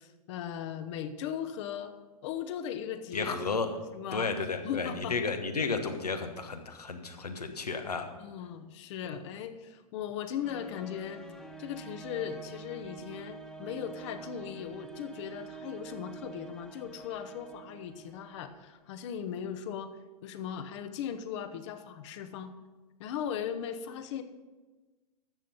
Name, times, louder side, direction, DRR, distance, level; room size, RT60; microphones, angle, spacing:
voice 1, 0.0-1.9 2.2-3.4 3.7-4.3 4.6-5.1 8.2-11.2 11.6-19.9 20.2-22.5 23.0-24.2, left 9 dB, 50° left, 10 dB, 1.0 m, -38 dB
voice 2, 3.1-3.7 4.1-8.1, left 4 dB, 80° left, 6 dB, 1.3 m, -33 dB
sound 1, 10.4-18.8, right 4 dB, 5° left, 1.0 m, -47 dB
13.0 x 7.5 x 5.4 m, 1.2 s
figure-of-eight pair, 105°, 20 cm